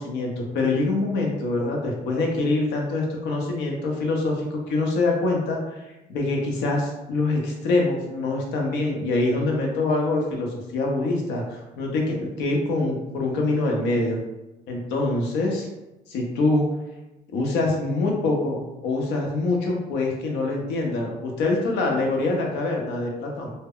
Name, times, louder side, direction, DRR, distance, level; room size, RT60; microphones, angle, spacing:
voice 1, 0.0-14.2 14.7-15.7 16.1-16.7 17.3-23.5, left 2 dB, 90° left, 0 dB, 0.7 m, -25 dB
2.1 x 2.0 x 3.6 m, 1.0 s
cardioid pair, 110°, 17 cm